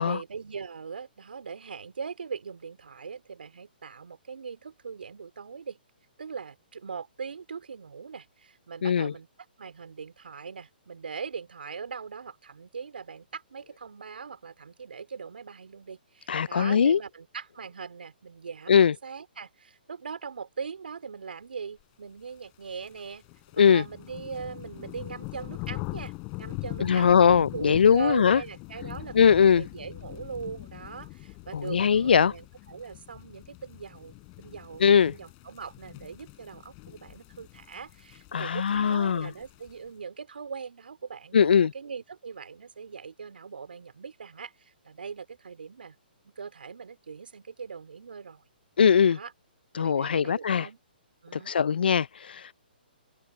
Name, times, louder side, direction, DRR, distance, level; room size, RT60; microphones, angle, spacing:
voice 1, 0.0-5.8 6.2-9.3 9.6-23.2 23.6-46.0 46.2-48.4 49.0-49.3 49.8-50.8 51.2-51.6, right 6 dB, 75° right, 4.4 m, -40 dB
voice 2, 8.8-9.1 16.3-17.0 18.7-18.9 23.6-23.8 26.8-28.4 29.1-29.6 31.5-32.3 34.8-35.1 38.3-39.3 41.3-41.7 48.8-49.2 49.7-50.7 51.3-52.5, left 7 dB, 70° left, 0.5 m, -21 dB
sound 1, 22.4-39.9, left 31 dB, 30° left, 4.4 m, -43 dB
open air
hypercardioid pair, 135°, 5 cm